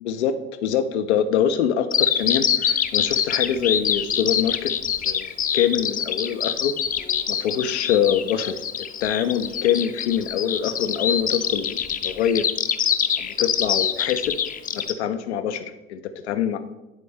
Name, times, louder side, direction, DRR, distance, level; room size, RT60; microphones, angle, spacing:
voice 1, 0.0-6.7 7.3-12.5 13.2-14.4 14.7-16.6, left 9 dB, 85° left, 8 dB, 0.5 m, -25 dB
Bird vocalization bird call bird song, 1.9-14.9, left 8 dB, 25° left, 0.5 m, -24 dB
9.6 x 4.1 x 3.4 m, 1.0 s
hypercardioid pair, 70°, 33 cm